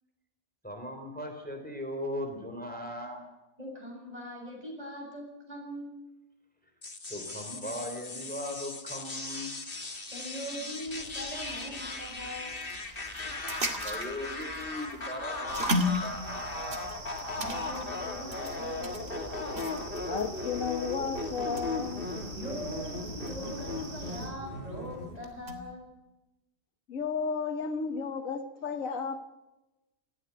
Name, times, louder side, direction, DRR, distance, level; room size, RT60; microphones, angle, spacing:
voice 1, 0.6-3.2 7.1-9.6 13.8-16.9, left 1 dB, 5° left, 3.3 m, -38 dB
voice 2, 3.6-6.0 10.1-12.6 17.4-19.1 22.3-25.9, equal, 30° right, 7.8 m, -41 dB
sound 1, 6.8-25.2, left 3 dB, 45° left, 2.2 m, -38 dB
sound 2, 10.9-25.7, left 1 dB, 50° right, 2.4 m, -38 dB
sound 3, 15.5-24.3, right 2 dB, 80° right, 5.8 m, -44 dB
voice 3, 20.1-22.0 26.9-29.3, left 5 dB, 90° left, 1.7 m, -33 dB
19.5 x 14.5 x 9.4 m
omnidirectional pair, 1.4 m